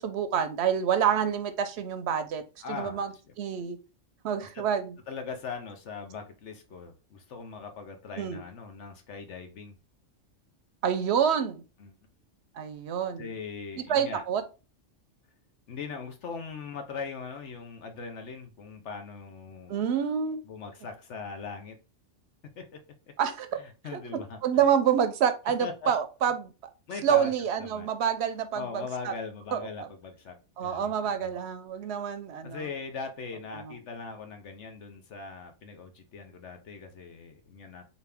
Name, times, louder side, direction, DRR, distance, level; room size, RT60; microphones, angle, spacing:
voice 1, 0.0-2.4 2.7-3.8 4.2-5.0 8.2-8.4 10.8-11.6 12.5-13.3 13.8-14.4 19.7-20.4 23.2-23.6 23.9-24.0 24.4-26.7 27.0-29.1 29.5-29.9 30.6-32.7 33.5-33.7, right 8 dB, 65° right, 10 dB, 0.8 m, -28 dB
voice 2, 2.6-3.1 4.5-4.6 5.1-9.7 11.8-12.0 13.2-14.2 15.7-19.8 20.5-21.8 22.6-22.8 23.8-24.4 25.6-25.9 26.9-27.3 27.6-27.9 28.5-30.4 30.6-31.4 32.4-37.8, left 5 dB, 70° left, 6 dB, 1.1 m, -40 dB
4.1 x 2.7 x 3.4 m, 0.32 s
omnidirectional pair, 1.3 m